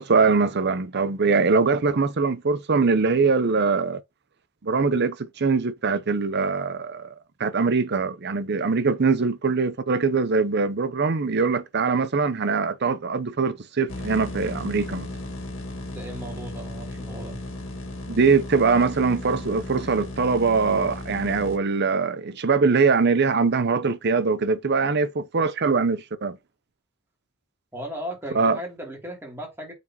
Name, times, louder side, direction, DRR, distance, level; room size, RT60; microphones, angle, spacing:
voice 1, 0.0-4.0 4.6-7.1 7.4-15.1 18.1-26.4 28.3-28.6, right 4 dB, 55° right, 0.7 m, -22 dB
sound 1, 13.9-21.6, left 1 dB, 75° left, 1.8 m, -35 dB
voice 2, 15.9-17.4 27.7-29.7, equal, 10° right, 2.7 m, -36 dB
9.0 x 4.2 x 2.9 m
head